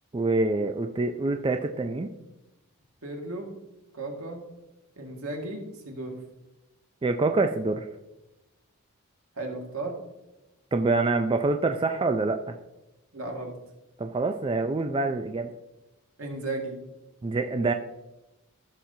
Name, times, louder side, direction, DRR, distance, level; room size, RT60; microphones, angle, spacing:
voice 1, 0.1-2.1 7.0-7.9 10.7-12.5 14.0-15.5 17.2-17.7, right 3 dB, 25° right, 6 dB, 0.3 m, -26 dB
voice 2, 3.0-3.5 3.9-4.4 5.0-6.1 9.4-9.9 13.1-13.6 16.2-16.8, right 2 dB, 75° right, 1 dB, 1.8 m, -35 dB
14.5 x 5.8 x 2.7 m, 0.97 s
head